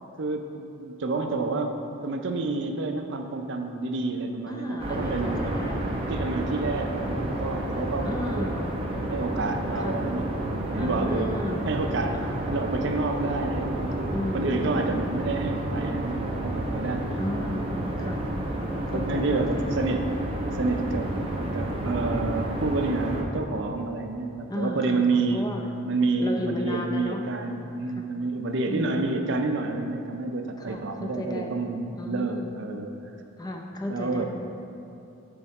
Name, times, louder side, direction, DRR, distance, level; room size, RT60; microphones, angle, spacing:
voice 1, 0.2-1.8 2.0-5.6 6.1-8.6 9.1-11.3 11.7-17.0 17.8-18.2 18.9-20.1 20.5-21.1 21.5-25.5 25.9-32.9 33.9-34.3, right 3 dB, 55° right, 5 dB, 0.5 m, -29 dB
voice 2, 4.5-6.0 8.0-8.7 9.7-10.0 10.8-11.8 12.2-12.3 14.0-15.1 17.2-18.2 18.6-19.7 21.2-21.9 24.5-25.7 26.2-27.2 28.0-28.1 28.7-29.3 30.6-31.5 32.0-32.5 33.4-34.3, left 1 dB, 20° left, 1 dB, 0.4 m, -34 dB
sound 1, 4.8-23.2, right 1 dB, 25° right, 0.7 m, -30 dB
7.0 x 4.3 x 4.8 m, 2.7 s
head